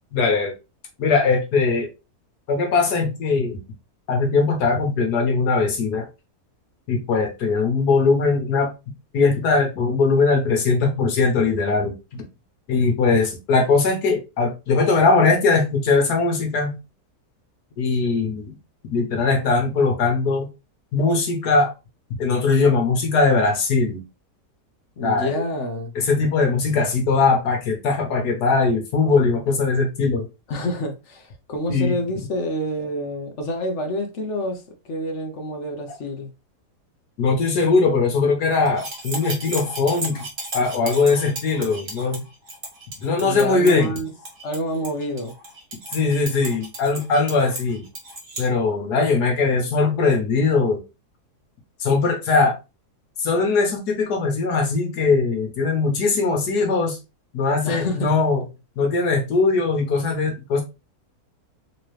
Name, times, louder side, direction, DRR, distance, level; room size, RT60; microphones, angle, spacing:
voice 1, 0.1-0.5 1.0-1.9 2.5-3.6 4.1-6.1 6.9-8.7 9.1-11.9 12.7-16.8 17.8-18.5 18.9-20.5 20.9-21.7 22.2-24.0 25.0-25.4 25.9-30.3 31.7-32.0 37.2-40.3 40.5-42.2 43.0-44.0 45.9-47.8 48.4-50.8 51.8-52.5 53.2-57.0 57.3-58.4 58.8-60.6, left 4 dB, 80° left, 1.6 m, -20 dB
voice 2, 25.0-25.9 30.5-36.3 43.2-44.1 44.4-45.3 57.6-58.2, equal, 55° left, 0.9 m, -28 dB
sound 1, 38.7-48.5, right 2 dB, 40° right, 1.2 m, -35 dB
3.9 x 2.9 x 3.1 m
omnidirectional pair, 1.7 m